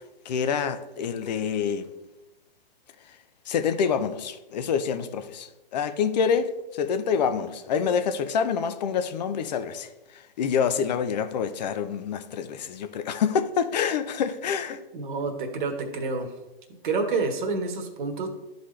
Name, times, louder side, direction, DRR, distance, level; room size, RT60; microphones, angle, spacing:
voice 1, 0.3-1.9 3.5-14.8, left 7 dB, 45° left, 0.6 m, -27 dB
voice 2, 14.9-16.3 16.8-18.3, right 4 dB, 55° right, 1.3 m, -28 dB
12.0 x 4.0 x 3.2 m
hypercardioid pair, 140°, 29 cm